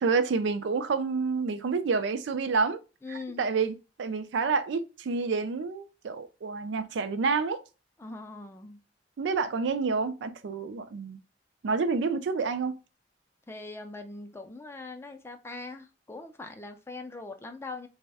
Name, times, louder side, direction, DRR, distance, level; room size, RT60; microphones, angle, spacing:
voice 1, 0.0-2.8 3.1-7.6 9.2-11.2 11.6-12.8, right 4 dB, 80° right, 0.4 m, -28 dB
voice 2, 3.0-3.4 8.0-8.8 13.5-17.9, left 3 dB, 15° left, 0.4 m, -41 dB
3.3 x 2.1 x 3.4 m
head